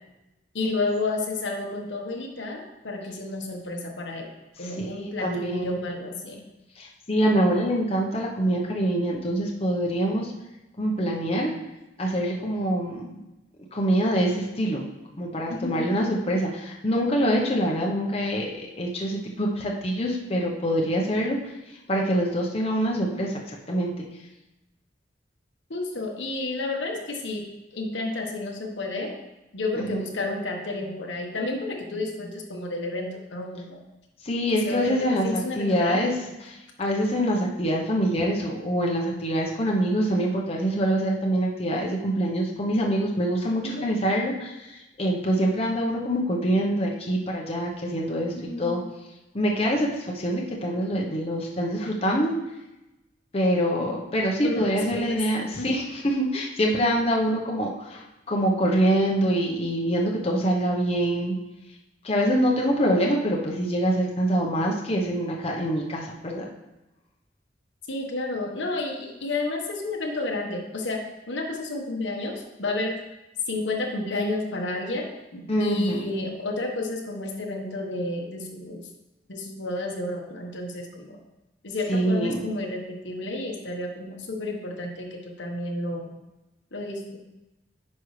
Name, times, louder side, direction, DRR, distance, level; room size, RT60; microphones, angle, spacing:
voice 1, 0.5-4.3 4.6-6.4 15.5-15.8 25.7-27.4 27.7-29.1 29.5-33.8 34.6-36.2 43.6-43.9 48.3-48.8 54.4-55.2 55.6-55.8 67.9-71.0 71.3-72.9 73.5-78.8 79.3-81.2 81.6-86.1 86.7-87.0, left 2 dB, 80° left, 1 dB, 1.2 m, -31 dB
voice 2, 4.6-5.7 6.8-10.3 10.8-11.5 12.0-13.2 13.7-14.9 15.2-21.4 21.9-23.9 29.8-30.0 34.2-48.8 49.3-52.3 53.3-61.3 62.0-66.5 75.5-76.1 81.9-82.5, equal, 35° left, -1 dB, 0.9 m, -25 dB
9.7 x 5.4 x 3.2 m, 0.98 s
head